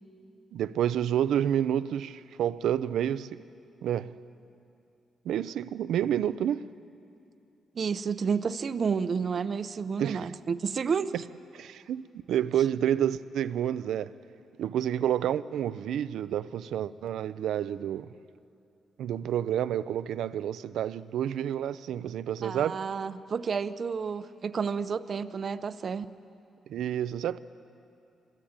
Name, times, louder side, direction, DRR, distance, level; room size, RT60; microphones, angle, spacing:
voice 1, 0.5-3.4 3.8-4.1 5.2-6.7 10.0-10.3 11.1-11.2 11.5-14.1 14.6-18.1 19.0-22.8 26.7-27.4, right 10 dB, 90° right, 0.6 m, -29 dB
voice 2, 7.7-11.1 22.4-26.1, right 6 dB, 40° right, 0.7 m, -30 dB
25.0 x 21.0 x 8.9 m
cardioid pair, 140°, 0 cm